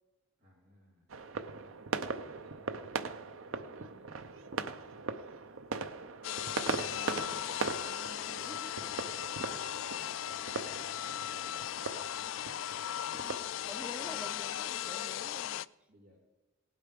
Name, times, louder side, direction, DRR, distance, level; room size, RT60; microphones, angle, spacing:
voice 1, 0.4-2.7 3.4-5.1 8.1-9.2 10.2-12.4 13.5-14.1 15.9-16.2, equal, 45° right, -2 dB, 3.0 m, -62 dB
sound 1, 1.1-13.3, right 4 dB, 75° right, 0.7 m, -40 dB
voice 2, 3.7-4.2 7.9-8.9 13.2-15.6, equal, 5° right, 7 dB, 0.7 m, -50 dB
sound 2, 6.2-15.7, left 11 dB, 65° left, 0.3 m, -37 dB
18.0 x 8.2 x 5.2 m, 1.1 s
head